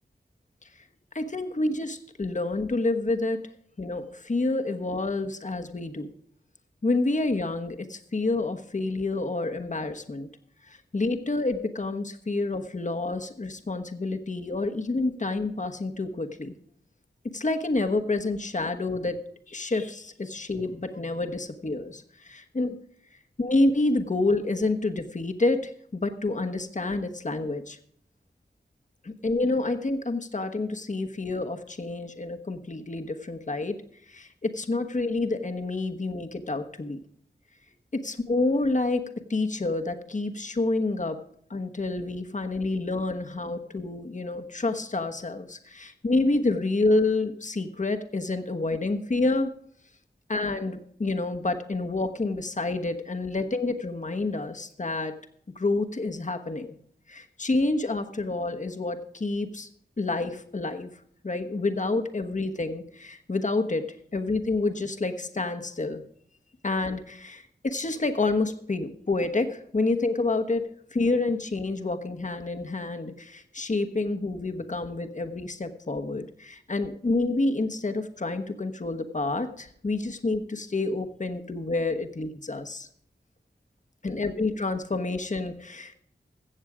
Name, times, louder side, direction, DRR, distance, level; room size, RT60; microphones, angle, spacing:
voice 1, 1.1-3.4 3.8-6.1 6.8-10.3 10.6-16.5 17.2-22.8 23.4-27.8 29.0-33.8 34.1-37.0 37.9-41.2 41.5-49.5 50.3-55.1 55.5-56.8 57.1-59.7 60.0-60.9 61.2-63.8 64.1-66.0 66.6-82.9 84.0-86.0, left 2 dB, 45° left, 6 dB, 1.2 m, -28 dB
15.5 x 7.3 x 4.9 m, 0.64 s
cardioid pair, 50°, 18 cm